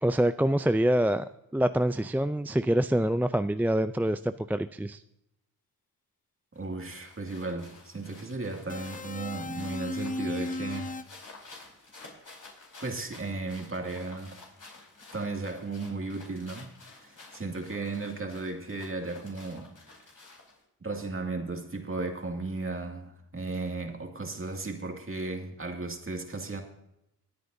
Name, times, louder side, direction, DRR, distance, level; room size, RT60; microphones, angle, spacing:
voice 1, 0.0-1.3 1.5-5.0, right 1 dB, 5° right, 0.4 m, -25 dB
sound 1, 6.5-20.6, left 3 dB, 55° left, 4.5 m, -52 dB
voice 2, 6.6-11.0 12.8-14.4 15.1-19.7 20.8-26.6, right 3 dB, 35° right, 2.2 m, -35 dB
sound 2, 8.7-11.0, left 2 dB, 20° left, 0.7 m, -35 dB
23.0 x 9.4 x 2.7 m
cardioid pair, 60°, 38 cm